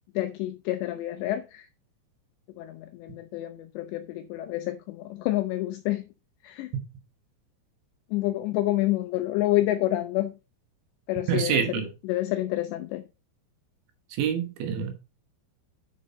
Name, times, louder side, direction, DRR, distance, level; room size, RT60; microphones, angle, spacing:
voice 1, 0.2-1.7 2.6-6.1 6.4-6.7 8.1-10.3 11.1-13.0, left 15 dB, 80° left, 2.5 m, -28 dB
voice 2, 11.3-11.9 14.2-14.9, right 8 dB, 75° right, 3.4 m, -26 dB
10.5 x 5.5 x 4.0 m
omnidirectional pair, 5.6 m